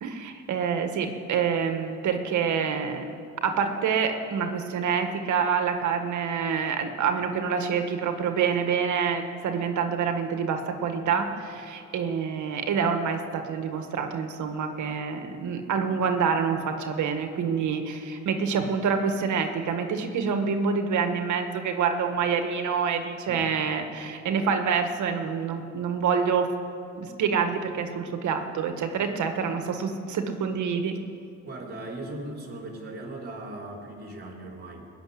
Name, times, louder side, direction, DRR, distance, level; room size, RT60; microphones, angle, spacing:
voice 1, 0.0-3.0 3.4-26.5 26.9-31.0, right 6 dB, 75° right, 6 dB, 1.5 m, -27 dB
voice 2, 31.5-34.9, right 2 dB, 35° right, 0 dB, 3.9 m, -38 dB
21.0 x 7.1 x 9.6 m, 2.7 s
cardioid pair, 90°, 30 cm